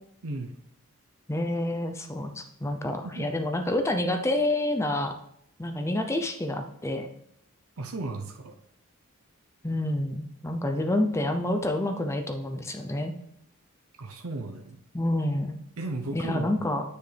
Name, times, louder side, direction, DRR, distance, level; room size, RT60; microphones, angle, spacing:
voice 1, 0.2-0.5 3.0-3.3 7.8-8.5 14.0-14.8 15.8-16.7, right 2 dB, 70° right, 3 dB, 0.8 m, -35 dB
voice 2, 1.3-5.1 5.6-7.1 9.6-13.1 14.9-15.6 16.1-16.8, left 1 dB, 10° left, 5 dB, 0.5 m, -28 dB
9.5 x 6.6 x 3.4 m, 0.73 s
head